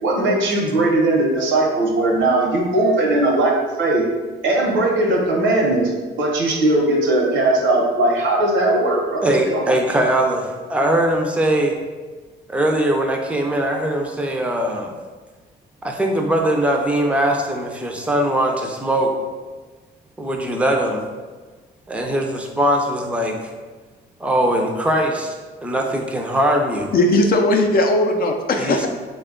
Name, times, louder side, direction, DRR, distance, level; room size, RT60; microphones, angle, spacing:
voice 1, 0.0-3.5 3.8-4.0 4.4-5.9 6.2-9.7, right 2 dB, 75° right, -1 dB, 0.9 m, -19 dB
voice 2, 9.2-11.8 12.5-14.9 15.8-19.1 20.2-21.0 21.9-23.5 24.2-25.4 25.6-26.9 28.6-28.9, right 1 dB, 5° right, 1 dB, 0.5 m, -21 dB
voice 3, 26.9-28.9, left 2 dB, 50° left, 3 dB, 0.5 m, -17 dB
3.4 x 2.2 x 3.6 m, 1.4 s
cardioid pair, 90°, 20 cm